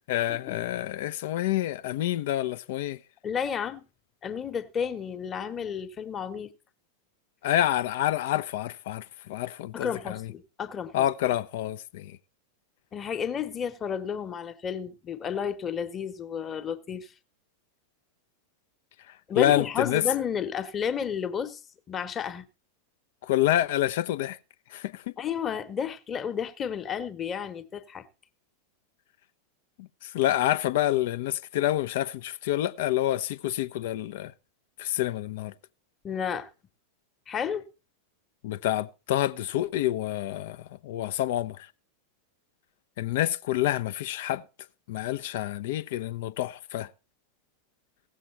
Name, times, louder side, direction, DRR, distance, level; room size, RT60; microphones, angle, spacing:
voice 1, 0.1-3.0 7.4-10.3 10.9-12.2 19.4-20.0 23.2-24.4 24.7-25.1 29.8-34.3 34.8-35.5 38.4-41.7 43.0-44.4 44.9-46.9, left 13 dB, 55° left, 0.7 m, -28 dB
voice 2, 3.2-3.8 4.2-6.5 9.7-11.1 12.9-17.1 19.3-21.6 21.9-22.5 25.2-28.0 36.0-36.5 37.3-37.6, left 7 dB, 25° left, 1.3 m, -32 dB
16.5 x 7.6 x 4.4 m
figure-of-eight pair, 90°, 0 cm